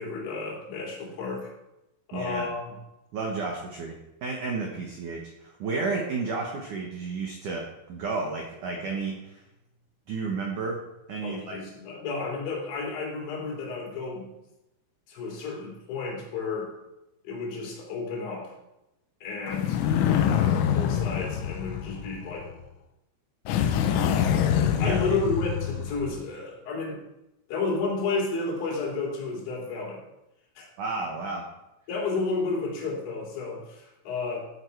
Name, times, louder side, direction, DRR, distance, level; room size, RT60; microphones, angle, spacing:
voice 1, 0.0-1.5 2.1-2.7 11.2-14.3 15.1-16.8 17.2-18.5 19.2-22.5 23.8-24.2 24.8-27.0 27.5-30.0 30.6-30.7 31.9-34.4, left 3 dB, 65° left, -4 dB, 5.3 m, -32 dB
voice 2, 2.1-2.5 3.1-9.4 10.1-10.8 11.1-11.6 24.8-25.0 30.8-31.4, right 4 dB, 80° right, 0 dB, 1.8 m, -32 dB
sound 1, 19.5-22.5 23.5-26.2, left 9 dB, 85° left, 3.6 m, -25 dB
14.5 x 8.2 x 4.7 m, 0.92 s
omnidirectional pair, 5.9 m